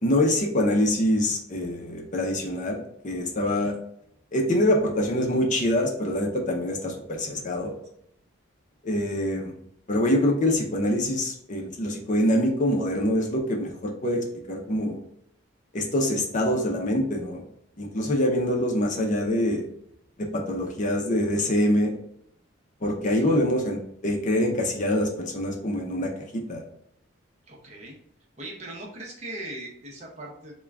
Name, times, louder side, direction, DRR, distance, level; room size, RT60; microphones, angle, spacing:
voice 1, 0.0-3.7 4.3-7.7 8.8-9.5 9.9-14.2 14.5-15.0 15.7-17.4 17.8-19.6 20.2-22.0 22.8-26.6, left 1 dB, 40° left, 0 dB, 0.6 m, -25 dB
voice 2, 3.4-3.8 23.0-23.3 27.5-28.0 28.4-30.5, right 1 dB, 35° right, -2 dB, 0.7 m, -40 dB
3.6 x 2.2 x 3.4 m, 0.73 s
head